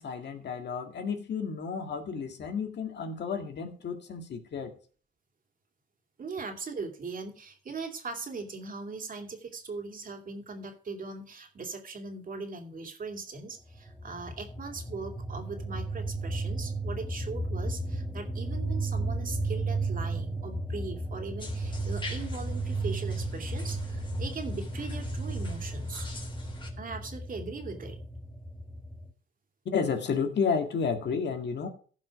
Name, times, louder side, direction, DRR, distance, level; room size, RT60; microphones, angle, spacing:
voice 1, 0.0-4.7 29.7-31.7, left 6 dB, 60° left, 5 dB, 2.0 m, -31 dB
voice 2, 6.2-26.1 26.8-28.0, right 4 dB, 45° right, 4 dB, 2.5 m, -40 dB
sound 1, 13.7-29.1, right 2 dB, 5° left, 1.4 m, -34 dB
sound 2, 21.4-26.7, left 3 dB, 25° left, 3.2 m, -46 dB
15.5 x 5.5 x 4.8 m, 0.41 s
cardioid pair, 90°, 20 cm